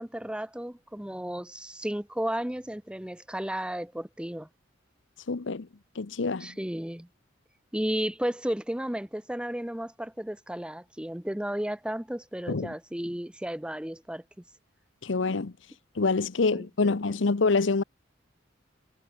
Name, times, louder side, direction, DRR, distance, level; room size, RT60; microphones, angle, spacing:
voice 1, 0.0-4.5 6.4-7.1 7.7-14.2 16.5-17.2, right 1 dB, 5° right, 0.8 m, -33 dB
voice 2, 5.3-5.7 6.0-6.5 12.5-12.7 15.0-15.5 16.0-17.8, left 3 dB, 75° left, 0.8 m, -26 dB
head